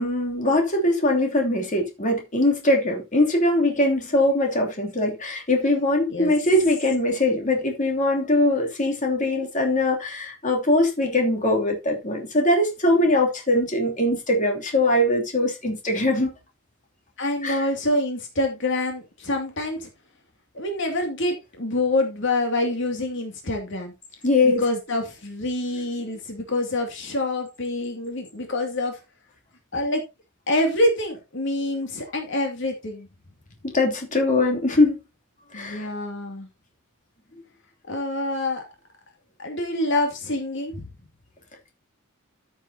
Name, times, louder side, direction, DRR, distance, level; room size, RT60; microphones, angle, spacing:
voice 1, 0.0-16.3 17.4-17.6 24.2-24.6 33.7-35.0 35.5-35.9, left 1 dB, 35° left, 2.9 m, -21 dB
voice 2, 17.2-19.9 20.5-23.9 24.4-29.0 29.7-30.0 30.5-33.1 35.5-36.5 37.9-38.6 39.4-40.8, left 1 dB, 60° left, 2.4 m, -26 dB
13.5 x 7.3 x 2.8 m
head